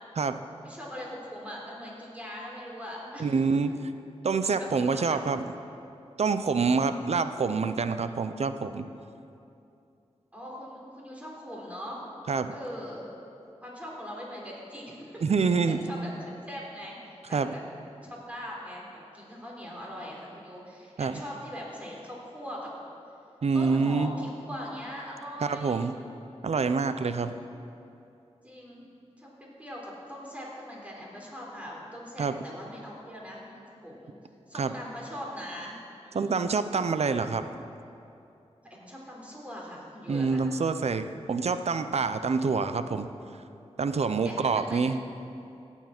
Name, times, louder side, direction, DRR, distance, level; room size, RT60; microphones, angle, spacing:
voice 1, 0.6-3.4 4.6-5.3 6.8-7.3 10.3-12.0 12.5-13.1 13.6-16.1 16.5-17.6 18.1-22.7 23.5-25.8 26.9-27.3 28.4-28.8 29.2-34.1 34.5-35.8 36.0-36.5 38.6-40.4 44.2-44.9, equal, 10° right, -4 dB, 3.7 m, -41 dB
voice 2, 3.2-3.7 4.2-5.4 6.2-8.9 12.3-12.5 15.2-15.8 17.3-17.5 21.0-21.1 23.4-24.1 25.4-25.9 26.4-27.3 32.2-32.3 34.5-34.7 36.1-37.4 40.1-43.1 43.8-45.0, right 4 dB, 70° right, 10 dB, 0.6 m, -26 dB
17.5 x 7.3 x 6.0 m, 2.7 s
wide cardioid pair, 60°, 11 cm